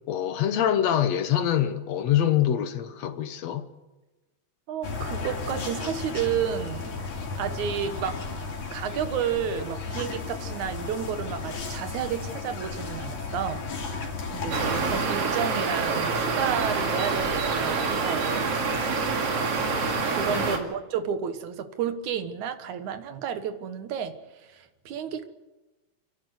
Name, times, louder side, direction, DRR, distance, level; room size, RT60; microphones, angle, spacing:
voice 1, 0.1-3.7 20.3-20.6, left 10 dB, 70° left, 2.3 m, -25 dB
voice 2, 4.7-7.1 7.4-8.4 8.7-13.7 14.3-18.5 20.1-25.3, right 8 dB, 85° right, 2.8 m, -31 dB
sound 1, 4.8-15.1, left 4 dB, 85° left, 4.2 m, -34 dB
sound 2, 14.5-20.6, right 4 dB, 55° right, 3.1 m, -26 dB
29.0 x 11.5 x 8.1 m
omnidirectional pair, 3.3 m